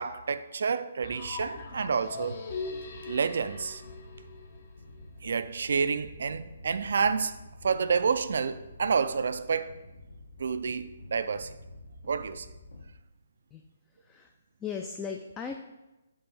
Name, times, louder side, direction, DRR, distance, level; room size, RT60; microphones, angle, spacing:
voice 1, 0.0-2.4 3.0-3.8 5.2-7.4 7.6-9.8 10.4-11.5 12.1-12.5, right 5 dB, 60° right, 0.3 m, -29 dB
sound 1, 1.0-5.0, left 4 dB, 45° left, 0.8 m, -40 dB
sound 2, 2.6-12.9, left 1 dB, 70° left, 1.3 m, -49 dB
voice 2, 14.0-14.3 14.6-15.6, left 6 dB, 15° left, 0.3 m, -37 dB
7.0 x 2.5 x 5.5 m
figure-of-eight pair, 135°, 0 cm